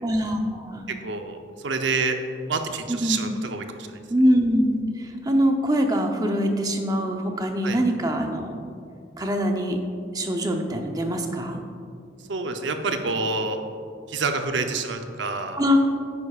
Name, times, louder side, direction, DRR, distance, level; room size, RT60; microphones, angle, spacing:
voice 1, 0.0-0.9 2.9-3.3 4.1-8.5 9.2-9.8 10.1-11.6 15.6-15.8, equal, 20° right, 3 dB, 0.7 m, -23 dB
voice 2, 1.0-2.2 2.5-4.0 7.6-7.8 12.3-13.6 14.1-15.6, right 4 dB, 75° right, 6 dB, 0.7 m, -27 dB
9.8 x 9.7 x 2.4 m, 2.4 s
head